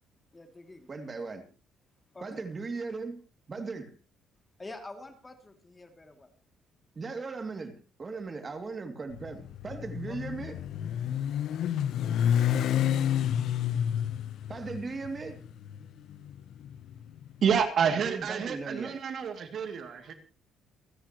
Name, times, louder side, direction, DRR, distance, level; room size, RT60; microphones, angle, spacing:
voice 1, 0.3-0.9 2.1-2.5 4.6-6.3 10.1-10.2, left 2 dB, 20° left, 2.8 m, -46 dB
voice 2, 0.9-1.4 2.2-3.2 3.5-3.9 6.9-10.6 14.5-15.5 17.8-19.0, right 4 dB, 30° right, 2.7 m, -38 dB
Motorcycle, 9.1-17.3, left 9 dB, 70° left, 0.9 m, -30 dB
voice 3, 17.4-20.1, right 7 dB, 55° right, 2.6 m, -28 dB
28.5 x 10.0 x 3.1 m
cardioid pair, 115°, 0 cm